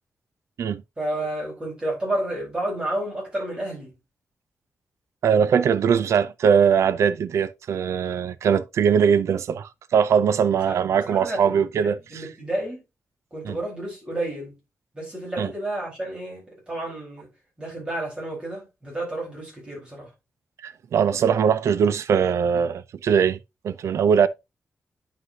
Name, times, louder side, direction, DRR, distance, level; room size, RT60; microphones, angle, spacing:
voice 1, 1.0-3.9 10.4-12.8 13.3-14.5 14.9-17.3 17.6-20.1, right 1 dB, 20° right, 4.5 m, -31 dB
voice 2, 5.2-12.3 13.4-13.6 15.4-15.5 20.6-23.4 23.6-24.3, right 7 dB, 75° right, 0.4 m, -21 dB
9.6 x 5.5 x 2.7 m
wide cardioid pair, 170°, 5 cm